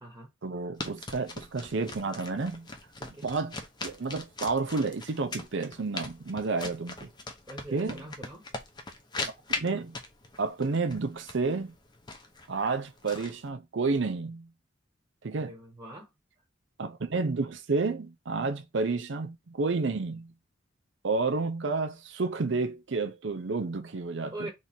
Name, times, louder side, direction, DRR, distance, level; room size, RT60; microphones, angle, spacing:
voice 1, 0.4-2.7 3.2-7.1 7.7-8.1 9.6-10.0 10.4-11.7 12.5-14.5 15.2-15.5 16.8-20.3 21.0-24.5, right 3 dB, 65° right, 0.6 m, -30 dB
sound 1, 0.8-13.5, left 3 dB, 20° left, 0.7 m, -40 dB
voice 2, 7.5-8.4 15.3-16.1 24.3-24.5, right 2 dB, 15° right, 1.0 m, -42 dB
3.4 x 3.1 x 4.1 m
head